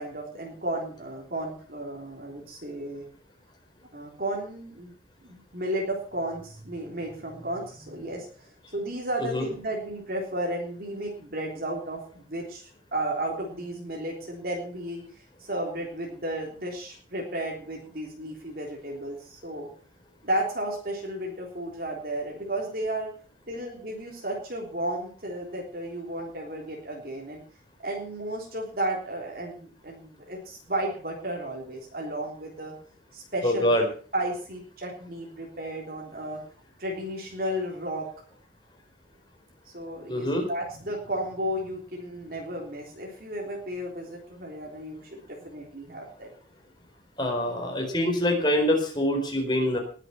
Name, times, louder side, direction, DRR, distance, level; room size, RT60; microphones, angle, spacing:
voice 1, 0.0-3.1 3.9-4.9 5.2-8.3 8.7-15.0 15.4-19.7 20.2-23.1 23.5-27.4 27.8-32.7 33.1-33.7 34.1-36.4 36.8-38.1 39.7-46.3, right 1 dB, 55° right, -1 dB, 3.5 m, -33 dB
voice 2, 33.4-33.9 40.1-40.5 47.2-49.8, left 1 dB, 25° left, 2 dB, 4.4 m, -25 dB
20.0 x 8.1 x 5.7 m, 0.43 s
head